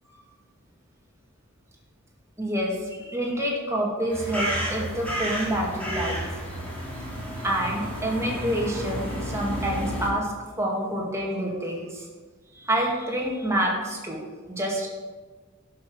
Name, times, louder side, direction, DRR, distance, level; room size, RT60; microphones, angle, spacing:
voice 1, 2.4-6.3 7.4-10.3 10.6-12.1 12.6-14.2 14.5-14.9, right 1 dB, 15° right, -2 dB, 2.1 m, -27 dB
sound 1, 4.1-10.1, equal, 5° left, 3.1 m, -31 dB
12.0 x 6.0 x 6.3 m, 1.4 s
head